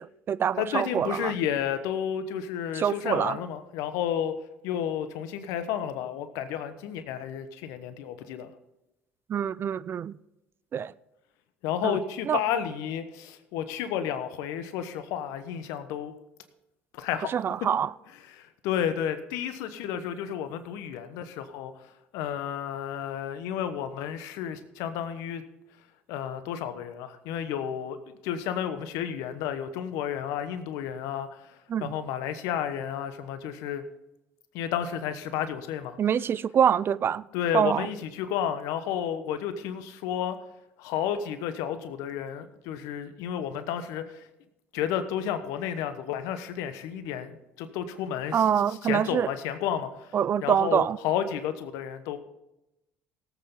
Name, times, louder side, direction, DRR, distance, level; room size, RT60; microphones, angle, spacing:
voice 1, 0.0-1.3 2.8-3.4 9.3-10.1 10.7-10.9 11.8-12.0 12.3-12.4 17.3-17.9 31.7-31.9 36.0-37.2 37.5-37.9 48.3-49.3 50.1-51.0, right 8 dB, 45° right, 0.4 m, -25 dB
voice 2, 0.6-8.5 11.6-16.1 16.9-17.3 18.3-21.7 22.1-25.4 26.1-28.0 28.2-33.9 34.5-36.0 37.3-40.4 40.8-44.3 44.7-50.1 50.4-52.2, left 9 dB, 75° left, 1.1 m, -32 dB
18.0 x 8.2 x 3.8 m
hypercardioid pair, 65°, 6 cm